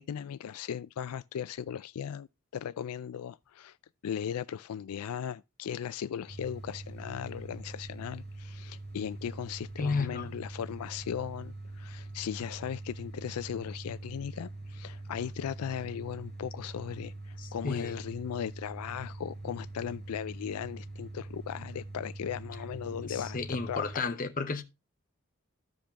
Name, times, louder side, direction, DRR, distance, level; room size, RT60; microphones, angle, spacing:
voice 1, 0.0-2.3 2.5-3.8 4.0-23.4 23.7-24.2, left 8 dB, 85° left, 0.4 m, -37 dB
sound 1, 6.3-24.0, right 2 dB, 45° right, 5.7 m, -44 dB
voice 2, 9.8-10.3 17.4-17.9 23.0-24.6, left 4 dB, 40° left, 0.9 m, -33 dB
13.0 x 5.1 x 3.4 m
head